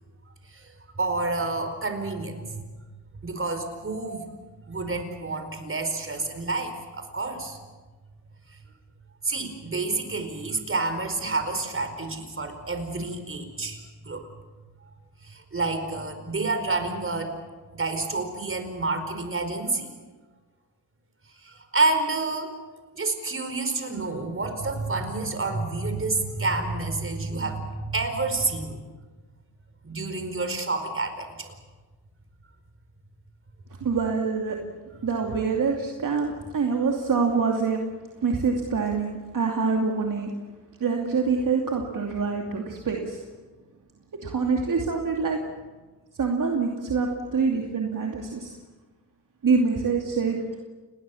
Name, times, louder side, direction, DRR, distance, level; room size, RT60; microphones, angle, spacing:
voice 1, 0.4-2.6 3.2-4.3 4.7-7.6 9.2-14.3 15.2-17.4 17.7-19.9 21.4-22.6 22.9-28.8 29.8-31.5, right 3 dB, 30° right, 7 dB, 4.8 m, -29 dB
voice 2, 33.8-34.6 35.0-37.8 38.2-40.3 40.8-43.2 44.2-45.4 46.2-48.6 49.4-50.4, right 5 dB, 50° right, 1 dB, 2.7 m, -25 dB
29.0 x 20.0 x 7.2 m, 1.3 s
cardioid pair, 80°, 41 cm